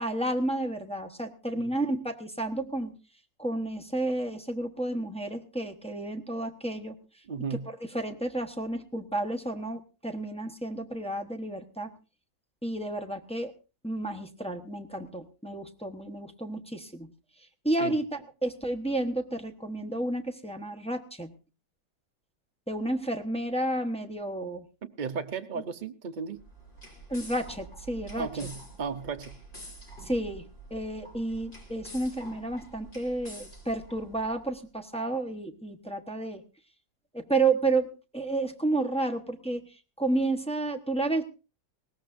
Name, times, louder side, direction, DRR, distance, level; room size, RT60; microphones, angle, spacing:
voice 1, 0.0-2.9 3.4-6.9 7.5-7.6 7.9-11.9 12.6-13.5 13.8-17.1 17.6-21.3 22.7-24.6 27.1-28.3 30.0-30.4 30.7-36.4 37.1-37.9 38.1-39.6 40.0-41.2, right 2 dB, 5° left, 3 dB, 0.6 m, -31 dB
voice 2, 7.3-7.7 17.8-18.0 24.8-26.4 28.2-29.4, right 5 dB, 70° right, 7 dB, 0.4 m, -35 dB
sound 1, 26.3-34.5, right 2 dB, 25° left, 3.1 m, -47 dB
20.5 x 18.0 x 2.6 m, 0.33 s
omnidirectional pair, 2.0 m